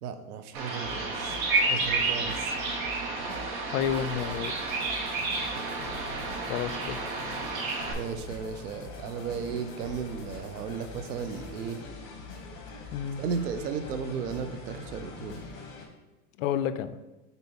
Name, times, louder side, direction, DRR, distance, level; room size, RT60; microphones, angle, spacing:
voice 1, 0.0-2.5 5.6-5.7 8.0-11.9 13.2-15.4, right 6 dB, 90° right, 9 dB, 0.8 m, -35 dB
Bird vocalization bird call bird song, 0.5-7.9, right 3 dB, 65° right, 1.4 m, -30 dB
sound 1, 0.8-15.9, left 3 dB, 45° left, 1.7 m, -43 dB
voice 2, 3.7-4.9 6.5-7.0 12.9-13.2 16.4-17.0, left 9 dB, 60° left, 12 dB, 0.5 m, -30 dB
4.1 x 4.1 x 5.6 m, 1.1 s
hypercardioid pair, 130°, 45 cm